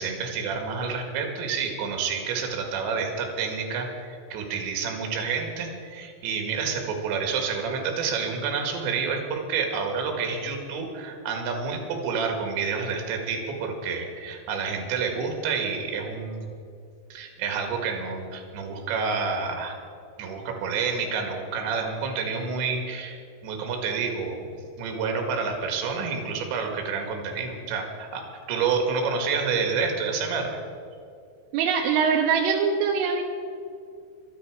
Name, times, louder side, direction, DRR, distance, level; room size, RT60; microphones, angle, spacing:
voice 1, 0.0-16.5 17.1-19.8 20.2-24.5 24.8-30.6, right 5 dB, 70° right, 3 dB, 4.0 m, -29 dB
voice 2, 31.5-33.2, right 6 dB, 85° right, 2 dB, 3.5 m, -23 dB
24.5 x 9.8 x 4.9 m, 2.6 s
omnidirectional pair, 5.7 m